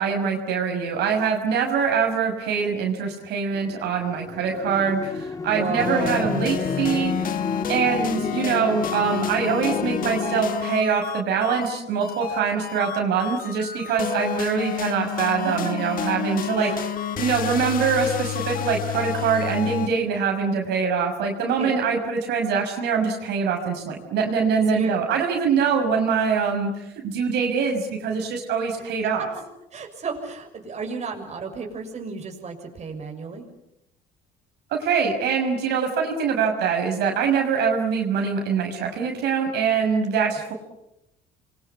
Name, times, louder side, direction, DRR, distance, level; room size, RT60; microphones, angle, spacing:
voice 1, 0.0-7.3 7.7-16.7 17.2-29.3 34.7-40.5, right 6 dB, 80° right, 2 dB, 6.1 m, -24 dB
sound 1, 3.5-10.4, left 3 dB, 20° left, 1.8 m, -33 dB
voice 2, 5.5-6.3 15.4-15.9 16.6-16.9 21.6-21.9 24.7-25.0 28.7-29.3 29.7-33.5, right 4 dB, 40° right, 3 dB, 6.5 m, -33 dB
sound 2, 5.8-19.9, left 9 dB, 55° left, 1.7 m, -29 dB
28.5 x 24.0 x 8.3 m, 0.87 s
cardioid pair, 110°, 17 cm